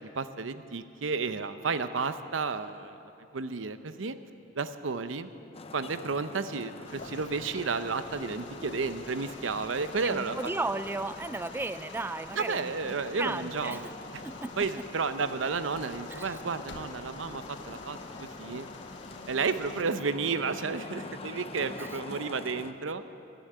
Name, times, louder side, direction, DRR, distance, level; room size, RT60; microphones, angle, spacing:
voice 1, 0.2-3.0 3.3-4.2 4.6-5.3 5.7-10.4 12.4-14.2 14.6-18.7 19.3-23.0, right 4 dB, 85° right, 11 dB, 0.7 m, -32 dB
Traffic noise roadway noise, 5.5-22.7, left 3 dB, 30° left, 0.7 m, -45 dB
sound 1, 6.8-19.8, left 3 dB, 65° left, 1.3 m, -49 dB
voice 2, 10.0-13.8 14.2-14.5 16.1-16.4 21.8-21.9, right 2 dB, 10° right, 13 dB, 0.3 m, -35 dB
14.0 x 11.0 x 9.1 m, 2.9 s
head